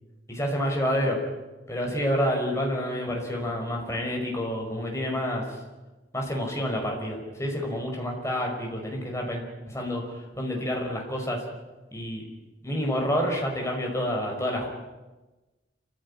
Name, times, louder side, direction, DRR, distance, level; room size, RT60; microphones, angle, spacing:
voice 1, 0.3-1.2 1.7-5.4 6.1-11.4 11.9-12.3 12.6-14.7, equal, 15° left, 1 dB, 5.4 m, -28 dB
28.0 x 15.5 x 9.9 m, 1.1 s
head